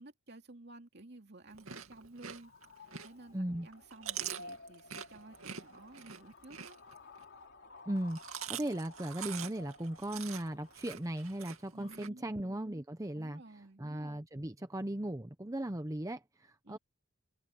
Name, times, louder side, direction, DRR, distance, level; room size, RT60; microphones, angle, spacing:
voice 1, 0.0-2.5 2.8-6.8 11.7-12.3 13.1-13.9 16.6-16.8, right 2 dB, 50° right, 2.6 m, -53 dB
Chewing mastication, 1.5-3.3 3.7-7.2 8.0-12.1, right 9 dB, 75° right, 2.4 m, -44 dB
sound 1, 2.3-12.0, left 2 dB, 55° left, 3.7 m, -55 dB
voice 2, 3.3-3.7 7.9-8.2 8.5-13.4 13.8-16.8, right 1 dB, 15° right, 0.8 m, -37 dB
head